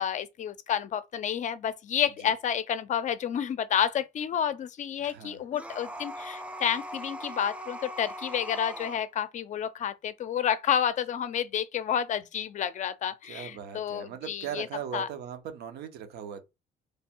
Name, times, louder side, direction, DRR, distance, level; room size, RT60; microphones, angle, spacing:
voice 1, 0.0-14.7 14.9-15.1, left 9 dB, 45° left, 0.5 m, -30 dB
voice 2, 5.0-5.4 13.2-16.4, right 8 dB, 75° right, 0.8 m, -39 dB
sound 1, 5.5-9.0, equal, 5° right, 0.5 m, -40 dB
3.2 x 2.3 x 4.3 m
cardioid pair, 110°, 17 cm